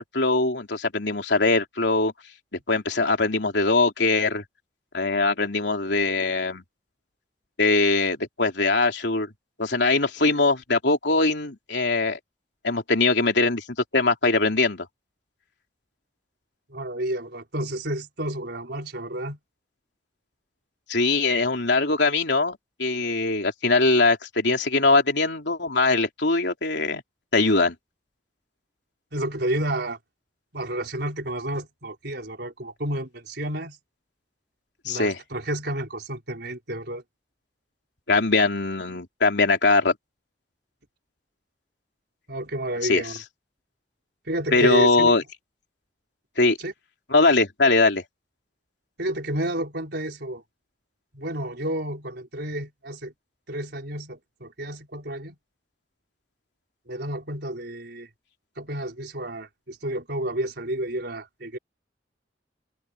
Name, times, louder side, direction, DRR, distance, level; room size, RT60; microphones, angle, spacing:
voice 1, 0.0-2.1 2.5-4.4 4.9-6.6 7.6-9.3 9.6-12.2 12.6-13.6 13.9-14.9 20.9-27.0 27.3-27.8 34.9-35.2 38.1-39.9 42.8-43.1 44.5-45.2 46.4-46.6 47.1-48.0, left 3 dB, 70° left, 3.6 m, -21 dB
voice 2, 16.7-19.4 29.1-30.0 30.5-33.8 34.8-37.0 42.3-43.2 44.3-45.1 46.6-46.7 49.0-50.4 51.1-53.1 53.5-55.4 56.9-58.1 58.6-61.6, right 1 dB, 65° right, 5.2 m, -30 dB
head